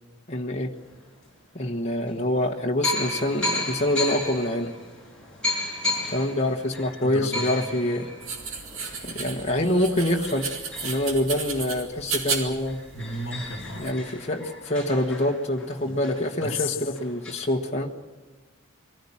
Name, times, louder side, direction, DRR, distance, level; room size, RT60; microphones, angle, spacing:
voice 1, 0.3-0.7 1.5-4.7 6.1-8.1 9.0-10.5 10.8-12.8 13.8-17.9, left 1 dB, 30° left, 0 dB, 1.4 m, -26 dB
sound 1, 1.1-1.2 2.1-2.2 2.8-12.0 12.4-12.5 12.7-17.3, left 2 dB, 5° left, 6.2 m, -34 dB
voice 2, 7.0-7.5 12.9-13.9 15.8-16.0 16.4-16.8, left 2 dB, 60° left, 7 dB, 1.5 m, -33 dB
sound 2, 8.2-13.9, right 5 dB, 65° right, 2.5 m, -34 dB
23.0 x 15.5 x 8.6 m, 1.3 s
head